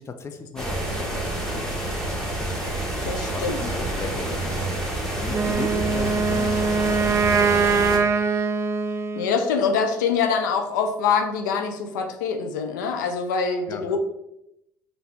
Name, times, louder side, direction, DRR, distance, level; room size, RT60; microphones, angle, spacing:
voice 1, 0.0-1.7 3.0-8.0 13.7-13.8, left 4 dB, 25° left, 7 dB, 0.6 m, -37 dB
sound 1, 0.6-8.0, right 1 dB, 5° left, 1.8 m, -28 dB
voice 2, 3.1-3.6 9.2-14.0, left 6 dB, 75° left, 5 dB, 0.6 m, -24 dB
Wind instrument woodwind instrument, 5.3-9.4, right 5 dB, 30° right, 0.5 m, -22 dB
5.6 x 2.7 x 3.5 m, 0.83 s
hypercardioid pair, 60°, 10 cm